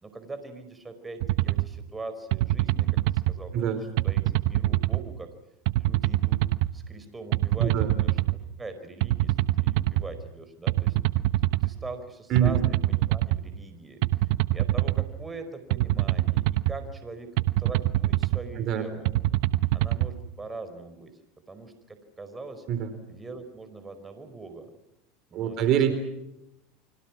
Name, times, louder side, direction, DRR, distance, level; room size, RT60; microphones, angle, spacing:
voice 1, 0.0-5.3 5.8-6.4 6.7-8.2 8.6-14.0 14.5-19.1 19.7-21.2 21.5-22.6 23.1-24.7 25.3-25.8, right 3 dB, 15° right, 9 dB, 4.9 m, -42 dB
sound 1, 1.2-1.7 2.3-3.3 4.0-5.0 5.7-6.7 7.3-8.4 9.0-10.0 10.7-11.7 12.4-13.4 14.0-15.1 15.7-16.7 17.4-18.4 19.0-20.1, right 16 dB, 65° right, 1.0 m, -24 dB
voice 2, 7.6-7.9 12.3-12.6 18.6-18.8 22.7-22.9 25.3-25.9, right 9 dB, 50° right, 10 dB, 4.0 m, -24 dB
29.5 x 25.5 x 6.1 m, 0.86 s
hypercardioid pair, 100°, 0 cm